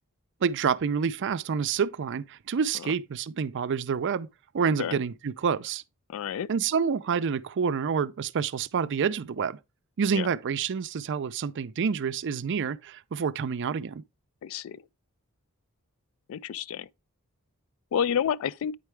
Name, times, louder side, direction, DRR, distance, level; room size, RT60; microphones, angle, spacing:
voice 1, 0.4-4.3 4.5-5.8 6.5-9.6 10.0-14.0, right 6 dB, 55° right, 0.4 m, -28 dB
voice 2, 6.1-6.5 10.1-10.3 14.4-14.8 16.3-16.9 17.9-18.8, left 8 dB, 65° left, 0.3 m, -29 dB
9.0 x 4.7 x 3.2 m
head